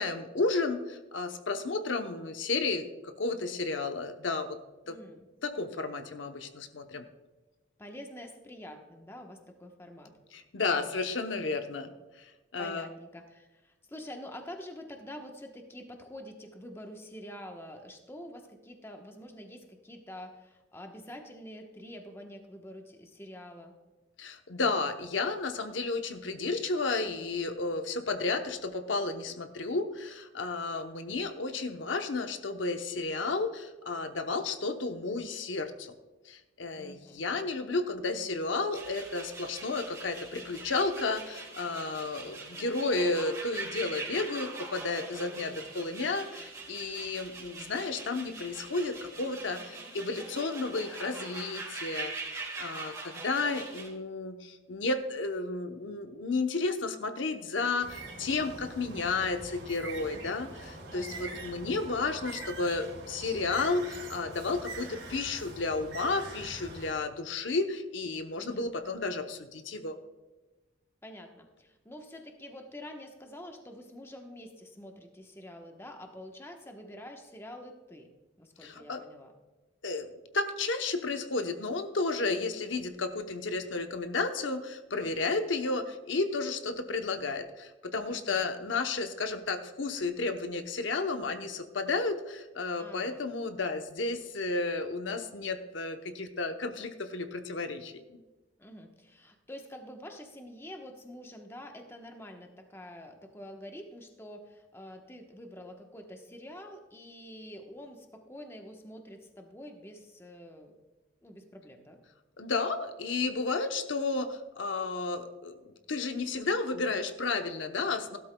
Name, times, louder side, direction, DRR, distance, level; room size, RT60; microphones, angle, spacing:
voice 1, 0.0-4.6 4.9-5.0 5.4-7.0 10.3-11.9 12.2-12.9 24.2-35.9 36.3-70.0 78.6-79.0 79.8-80.1 80.3-97.9 112.4-118.2, left 3 dB, 80° left, 7 dB, 0.8 m, -32 dB
voice 2, 4.8-5.2 7.8-10.1 10.9-11.0 12.6-23.8 36.8-37.2 60.9-61.5 68.4-68.6 71.0-78.1 78.4-79.3 88.1-88.4 92.8-93.3 98.6-110.7 111.2-112.0, left 1 dB, 15° left, 3 dB, 1.0 m, -47 dB
sound 1, 38.7-53.9, right 3 dB, 20° right, 3.0 m, -42 dB
Bird, 57.8-66.9, right 2 dB, 70° right, 3.5 m, -44 dB
16.5 x 12.0 x 2.2 m, 1.2 s
head